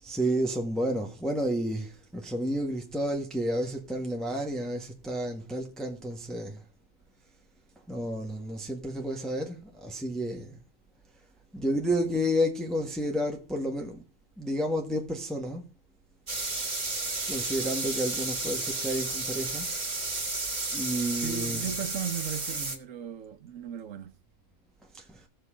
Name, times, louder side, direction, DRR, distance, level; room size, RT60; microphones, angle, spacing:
voice 1, 0.0-6.6 7.9-10.6 11.5-14.0 14.4-15.6 17.3-19.7 20.7-21.7 24.9-25.2, equal, ahead, 1.5 m, -31 dB
sound 1, 16.3-22.8, right 3 dB, 35° right, 1.9 m, -32 dB
voice 2, 21.1-24.1, right 9 dB, 80° right, 1.3 m, -37 dB
15.5 x 6.7 x 5.1 m
omnidirectional pair, 1.3 m